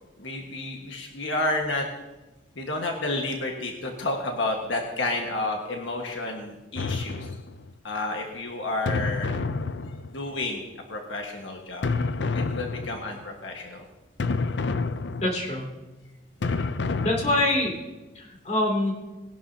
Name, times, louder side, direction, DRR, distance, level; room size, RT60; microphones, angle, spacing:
voice 1, 0.2-1.9 2.5-7.3 7.8-9.3 10.1-11.9 12.3-13.9 16.4-16.6, left 2 dB, 85° left, 2 dB, 1.6 m, -30 dB
sound 1, 6.8-7.8 8.9-10.4 11.8-13.2 14.2-15.6 16.4-17.8, left 3 dB, 65° left, 0.5 m, -29 dB
voice 2, 15.2-15.6 17.0-17.7 18.1-18.9, left 1 dB, 35° left, -1 dB, 2.8 m, -24 dB
20.0 x 11.5 x 2.8 m, 1.1 s
head